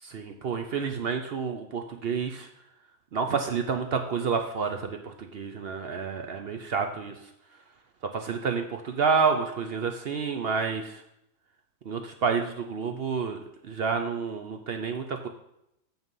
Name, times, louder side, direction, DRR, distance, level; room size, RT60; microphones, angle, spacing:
voice 1, 0.1-2.5 3.1-7.1 8.0-11.0 11.9-15.3, right 5 dB, 60° right, 5 dB, 0.8 m, -29 dB
7.1 x 5.9 x 5.4 m, 0.80 s
omnidirectional pair, 1.4 m